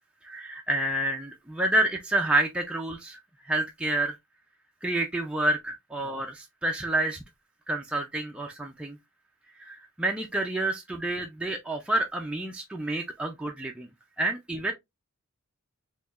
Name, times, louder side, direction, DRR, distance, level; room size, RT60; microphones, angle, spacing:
voice 1, 0.2-3.2 3.5-4.2 4.8-7.2 7.7-9.0 9.6-13.9 14.2-14.7, right 1 dB, 5° right, 0.3 m, -29 dB
4.5 x 2.9 x 2.3 m
head